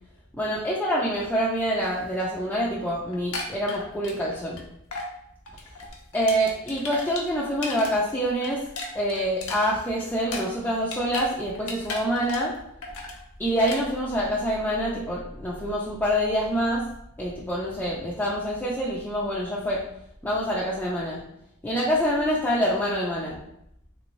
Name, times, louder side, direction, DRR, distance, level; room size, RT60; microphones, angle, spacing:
voice 1, 0.3-4.6 6.1-8.6 8.9-12.5 13.4-16.8 17.2-19.8 20.2-21.2 21.6-23.4, equal, 10° left, -6 dB, 0.4 m, -26 dB
sound 1, 3.1-4.6 4.9-5.1 5.5-7.9 8.2-11.3 11.6-12.6 12.8-13.2 13.6-13.8, left 3 dB, 70° left, 0.7 m, -35 dB
3.5 x 3.0 x 2.5 m, 0.78 s
head